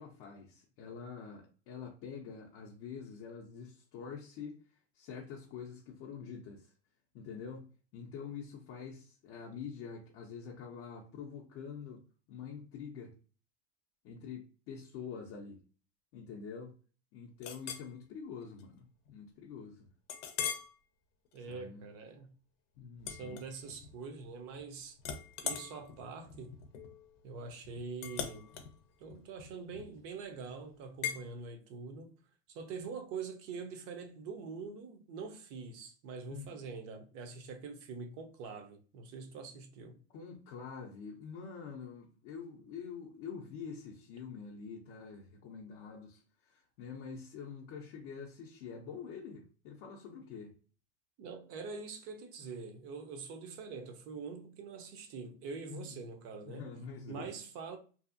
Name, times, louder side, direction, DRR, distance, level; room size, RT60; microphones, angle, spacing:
voice 1, 0.0-6.7 7.1-7.7 7.9-13.1 14.0-15.6 16.1-16.7 17.1-19.9 21.4-21.9 22.8-23.4 36.3-36.6 40.1-50.5 55.7-56.2 56.4-57.3, left 6 dB, 40° left, 0.5 m, -46 dB
Chink clink, 17.4-17.9 18.4-18.6 19.1-19.2 20.1-20.7 21.3-21.5 23.0-24.0 24.3-24.7 25.0-30.1 31.0-31.2, left 8 dB, 85° left, 0.6 m, -41 dB
voice 2, 21.3-22.3 23.1-25.0 25.4-26.6 27.2-28.5 29.0-32.1 32.5-40.0 51.2-56.7 57.1-57.8, right 4 dB, 40° right, 0.6 m, -44 dB
2.7 x 2.4 x 2.5 m
supercardioid pair, 140°, 35 cm